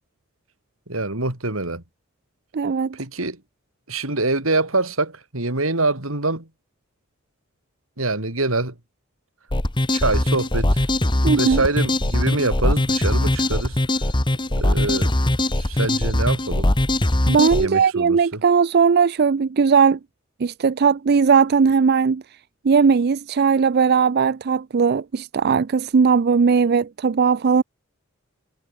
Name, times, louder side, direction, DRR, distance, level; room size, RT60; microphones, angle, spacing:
voice 1, 0.9-1.8 2.9-3.4 3.9-6.5 8.0-8.7 9.9-10.9 11.4-13.8 14.6-15.1 15.5-16.7 17.6-18.4, right 2 dB, 80° right, 4.2 m, -25 dB
voice 2, 2.5-3.0 11.2-11.6 17.3-20.0 20.4-22.2 22.6-27.6, right 5 dB, 50° right, 0.4 m, -18 dB
sound 1, 9.5-17.6, left 1 dB, 25° left, 1.3 m, -21 dB
head